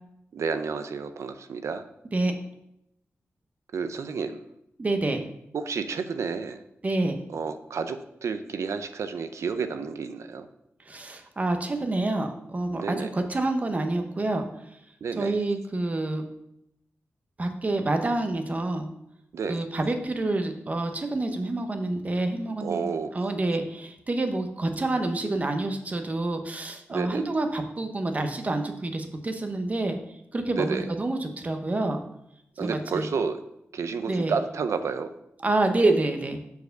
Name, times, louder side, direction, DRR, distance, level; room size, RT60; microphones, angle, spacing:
voice 1, 0.3-1.8 3.7-4.4 5.5-6.6 7.3-10.5 12.7-13.1 15.0-15.3 19.3-19.6 22.6-23.2 26.9-27.2 30.6-30.9 32.6-33.4 33.7-35.1, right 5 dB, 80° right, 9 dB, 0.6 m, -30 dB
voice 2, 4.8-5.2 6.8-7.2 10.9-14.5 15.1-16.2 17.4-18.9 19.5-22.8 23.1-30.0 30.3-32.0 32.6-33.1 34.1-34.3 35.4-36.4, right 2 dB, 30° right, 6 dB, 0.9 m, -27 dB
6.9 x 4.8 x 6.5 m, 0.80 s
wide cardioid pair, 145°, 5 cm